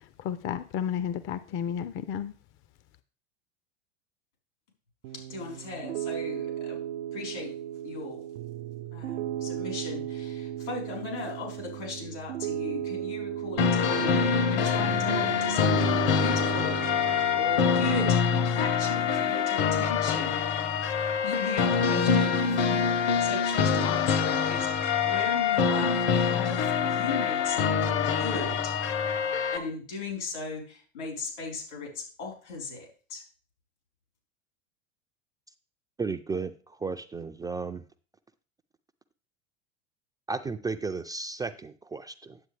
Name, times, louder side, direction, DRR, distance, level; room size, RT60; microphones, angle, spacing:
voice 1, 0.2-2.3, left 9 dB, 35° left, 14 dB, 0.6 m, -32 dB
Piano, 5.0-18.1, right 11 dB, 75° right, 0.6 m, -36 dB
voice 2, 5.1-6.8 7.1-7.5 7.8-8.2 8.9-18.2 18.5-20.4 20.9-28.8 29.5-33.2, left 4 dB, 80° left, 0 dB, 4.2 m, -37 dB
sound 1, 13.6-29.6, left 6 dB, 60° left, 1.1 m, -25 dB
voice 3, 36.0-37.8 40.3-42.4, right 4 dB, 10° right, 7 dB, 0.4 m, -34 dB
9.6 x 7.5 x 3.3 m, 0.39 s
hypercardioid pair, 90°, 34 cm